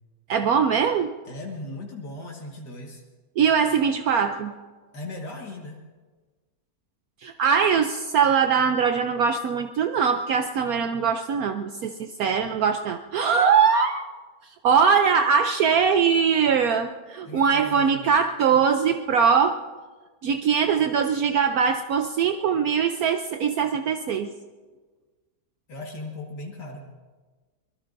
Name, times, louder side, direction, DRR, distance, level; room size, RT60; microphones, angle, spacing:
voice 1, 0.3-1.1 3.4-4.5 7.2-14.1 14.4-19.6 20.2-24.3, right 6 dB, 70° right, 7 dB, 1.1 m, -22 dB
voice 2, 1.2-3.0 4.9-5.8 17.2-18.1 25.7-27.0, left 2 dB, 80° left, 0 dB, 2.3 m, -38 dB
24.0 x 21.0 x 2.6 m, 1.4 s
omnidirectional pair, 1.8 m